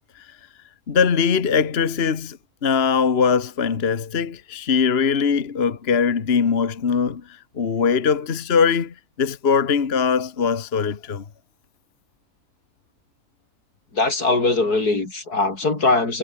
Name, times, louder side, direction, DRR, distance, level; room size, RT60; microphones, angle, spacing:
voice 1, 0.9-2.4 2.6-7.2 7.6-11.2, left 6 dB, 45° left, 1.5 m, -21 dB
voice 2, 13.9-16.2, left 3 dB, 80° left, 5.1 m, -21 dB
omnidirectional pair, 1.6 m